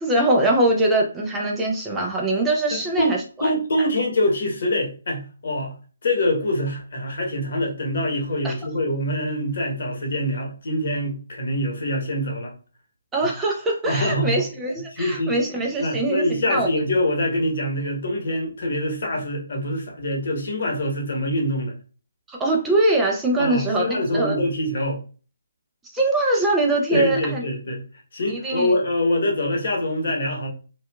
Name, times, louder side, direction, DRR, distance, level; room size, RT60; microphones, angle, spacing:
voice 1, 0.0-3.2 8.4-8.5 13.1-16.7 22.3-24.4 25.9-27.4 28.3-28.7, right 2 dB, 10° right, 0.5 m, -22 dB
voice 2, 2.7-5.8 6.0-12.5 13.2-13.3 13.9-14.4 14.9-15.3 15.8-21.7 23.4-25.0 26.9-27.8 28.1-30.5, left 1 dB, 60° left, 0.9 m, -24 dB
2.7 x 2.3 x 2.2 m
figure-of-eight pair, 145°, 0 cm